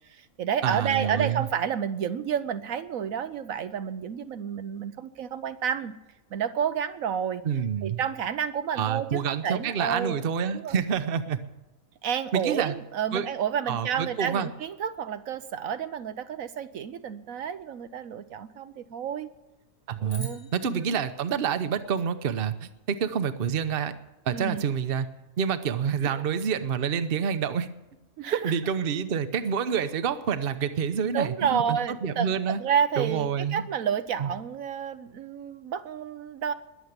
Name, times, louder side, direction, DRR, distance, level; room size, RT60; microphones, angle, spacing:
voice 1, 0.1-5.9 6.3-7.4 7.8-10.2 10.5-10.7 12.0-19.3 20.0-20.8 24.3-24.6 28.2-28.5 31.0-36.5, right 8 dB, 75° right, 11 dB, 1.1 m, -30 dB
voice 2, 0.6-1.4 7.4-8.0 8.8-11.4 12.3-12.7 13.1-13.3 13.7-14.5 19.9-23.9 24.3-25.1 25.4-27.7 28.3-32.6 33.0-33.6 34.2-34.3, right 7 dB, 45° right, 11 dB, 1.0 m, -28 dB
sound 1, 20.1-22.5, left 2 dB, 70° left, 3.4 m, -49 dB
21.0 x 7.3 x 8.1 m, 1.0 s
omnidirectional pair, 1.5 m